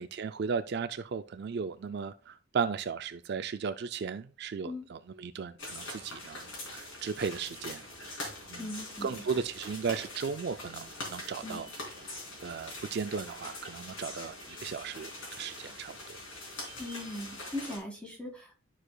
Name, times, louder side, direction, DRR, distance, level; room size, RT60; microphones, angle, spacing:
voice 1, 0.0-8.2 8.5-8.7 9.0-11.7 12.4-16.0, right 6 dB, 50° right, 0.3 m, -36 dB
sound 1, 5.6-17.8, left 2 dB, 65° left, 3.6 m, -43 dB
voice 2, 8.5-9.4 11.4-11.7 16.8-18.6, left 1 dB, 5° left, 1.9 m, -40 dB
12.0 x 4.8 x 2.2 m
head